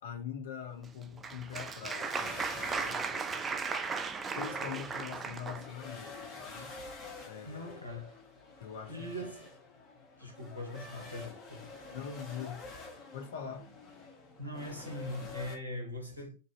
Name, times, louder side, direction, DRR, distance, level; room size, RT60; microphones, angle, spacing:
voice 1, 0.0-3.4 4.4-6.7 7.2-7.8 8.6-9.1 11.9-12.8 13.1-13.7, left 7 dB, 60° left, 0.6 m, -43 dB
Applause, 0.8-5.7, right 5 dB, 20° right, 0.3 m, -36 dB
sound 1, 1.9-15.6, left 3 dB, 25° left, 1.1 m, -48 dB
voice 2, 7.4-8.1 8.9-9.5 10.2-11.7 14.4-16.4, left 1 dB, 80° right, 1.2 m, -41 dB
3.3 x 2.6 x 3.0 m
figure-of-eight pair, 90°, 0 cm